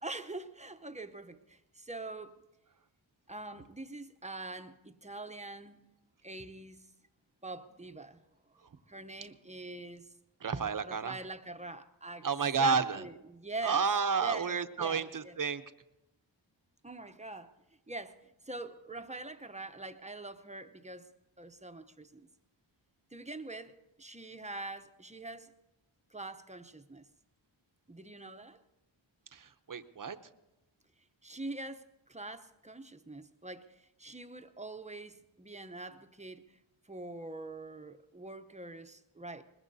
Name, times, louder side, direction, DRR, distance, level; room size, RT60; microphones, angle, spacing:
voice 1, 0.0-2.3 3.3-5.8 6.2-6.8 7.4-8.2 8.9-10.0 10.5-12.3 12.6-13.8 14.2-15.4 16.8-17.5 17.9-18.2 18.4-21.1 21.4-22.3 23.1-25.5 26.1-27.0 27.9-28.6 31.2-36.4 36.9-39.4, right 2 dB, 15° right, 9 dB, 0.7 m, -44 dB
voice 2, 10.4-11.1 12.2-13.0 13.6-15.6 29.3-30.2, right 5 dB, 45° right, 10 dB, 0.8 m, -31 dB
21.5 x 20.5 x 2.7 m, 0.95 s
wide cardioid pair, 85°, 47 cm